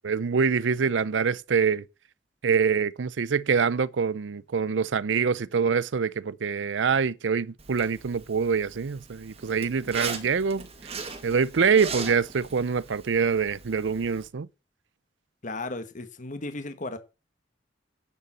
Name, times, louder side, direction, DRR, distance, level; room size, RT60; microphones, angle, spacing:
voice 1, 0.0-1.8 2.4-10.7 11.2-14.5, right 6 dB, 85° right, 0.5 m, -25 dB
Zipper (clothing), 7.6-14.3, right 4 dB, 35° right, 1.9 m, -39 dB
voice 2, 15.4-17.0, left 2 dB, 45° left, 1.4 m, -35 dB
10.0 x 6.7 x 7.4 m
head